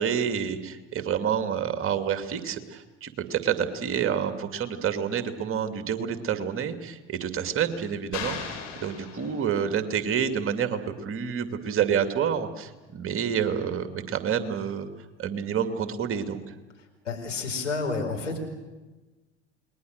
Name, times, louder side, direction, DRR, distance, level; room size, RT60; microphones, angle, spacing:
voice 1, 0.0-14.9 15.2-16.5, right 8 dB, 35° right, 8 dB, 2.5 m, -28 dB
sound 1, 8.1-9.9, left 7 dB, 50° left, 5.6 m, -37 dB
voice 2, 17.0-18.4, left 4 dB, 85° left, 2 dB, 4.5 m, -30 dB
29.0 x 21.0 x 6.6 m, 1.2 s
figure-of-eight pair, 70°, 35 cm